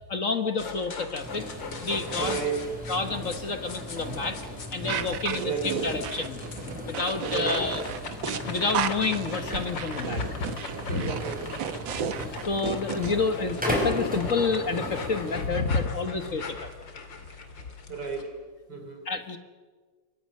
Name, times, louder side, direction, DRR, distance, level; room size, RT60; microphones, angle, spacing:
voice 1, 0.1-1.5 1.8-2.5 2.9-4.4 4.7-6.4 6.8-7.8 8.3-10.5 10.9-11.0 12.0-16.7 19.0-19.4, left 4 dB, 45° left, 8 dB, 1.6 m, -29 dB
sound 1, 0.6-18.2, left 4 dB, 75° left, 3.2 m, -40 dB
sound 2, 1.2-15.5, equal, 5° right, 5.7 m, -37 dB
voice 2, 2.2-2.7 5.3-5.9 7.2-7.6 10.9-11.5 17.9-18.3 18.7-19.1, right 5 dB, 60° right, 4 dB, 4.8 m, -32 dB
sound 3, 4.9-13.1, right 8 dB, 85° right, 2.0 m, -33 dB
27.5 x 24.0 x 6.5 m, 1.5 s
omnidirectional pair, 2.0 m